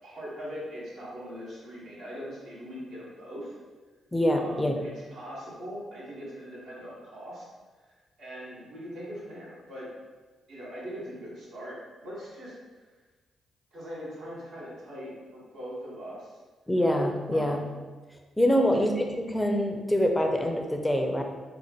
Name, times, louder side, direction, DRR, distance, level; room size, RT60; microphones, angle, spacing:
voice 1, 0.0-3.5 4.3-7.4 7.8-9.9 10.5-12.8 13.7-16.4 17.3-17.7 18.5-18.8, equal, 80° right, -8 dB, 1.5 m, -41 dB
voice 2, 4.1-4.7 16.7-17.6 18.4-21.2, equal, 10° left, 3 dB, 0.5 m, -25 dB
4.3 x 2.1 x 3.0 m, 1.3 s
supercardioid pair, 55°, 0 cm